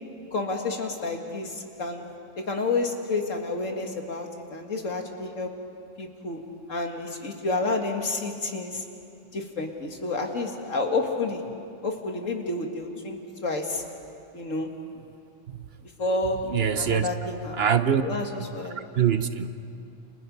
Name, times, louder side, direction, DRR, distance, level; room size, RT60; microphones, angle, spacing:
voice 1, 0.3-2.0 2.4-5.5 6.0-6.4 6.7-8.8 9.3-11.4 11.8-13.8 14.3-14.7 15.8-16.4 16.8-17.5 18.0-18.8, left 3 dB, 85° left, 3 dB, 2.5 m, -30 dB
voice 2, 16.5-17.1 17.5-18.0 18.4-18.5 18.9-19.5, right 8 dB, 55° right, 10 dB, 1.1 m, -23 dB
29.5 x 29.5 x 5.5 m, 2.5 s
omnidirectional pair, 1.3 m